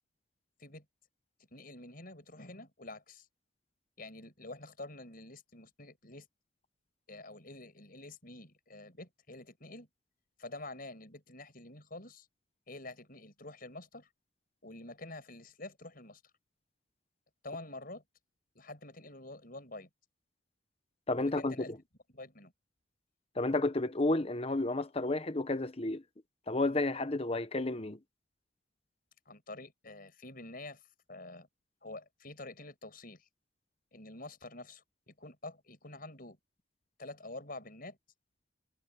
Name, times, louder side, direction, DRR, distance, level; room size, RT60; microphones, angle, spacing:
voice 1, 1.5-3.3 4.0-6.3 7.1-9.9 10.4-12.3 12.7-14.1 14.6-16.2 17.4-18.0 18.5-19.9 21.2-21.8 22.1-22.5 29.2-30.8 31.1-31.5 31.8-33.3 33.9-36.4 37.0-38.0, left 2 dB, 45° left, 6.7 m, -47 dB
voice 2, 21.1-21.8 23.4-26.0 26.5-28.0, left 2 dB, 30° left, 1.0 m, -31 dB
head